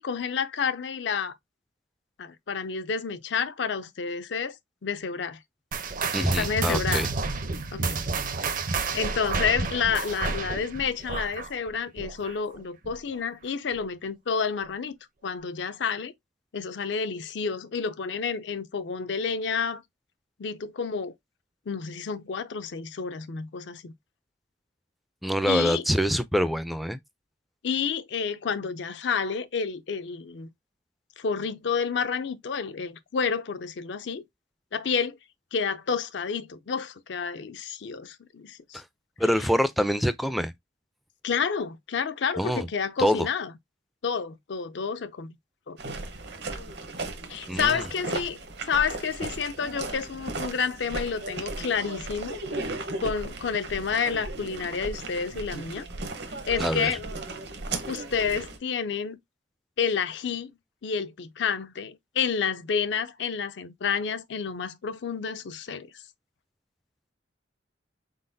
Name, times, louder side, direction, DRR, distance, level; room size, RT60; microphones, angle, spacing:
voice 1, 0.0-1.3 2.2-4.6 4.8-5.4 6.2-7.1 7.7-8.0 8.9-15.0 15.2-16.1 16.5-19.8 20.4-21.1 21.7-23.9 25.5-25.8 27.6-30.5 31.2-34.2 34.7-35.2 35.5-38.8 41.2-43.5 44.0-45.3 45.7-45.8 47.3-52.4 53.0-55.9 56.5-57.0 57.9-59.2 59.8-60.5 60.8-65.9, left 6 dB, 70° left, 0.5 m, -29 dB
sound 1, 5.7-12.6 12.8-13.2 13.8-13.9 14.6-14.7, right 4 dB, 45° right, 0.6 m, -30 dB
voice 2, 6.1-7.1 25.2-27.0 38.7-38.8 39.2-40.5 42.4-42.7 43.0-43.3 47.5-47.8 56.6-56.9, equal, ahead, 0.3 m, -25 dB
sound 2, 45.8-58.6, right 2 dB, 65° right, 0.9 m, -36 dB
4.1 x 3.9 x 2.6 m
head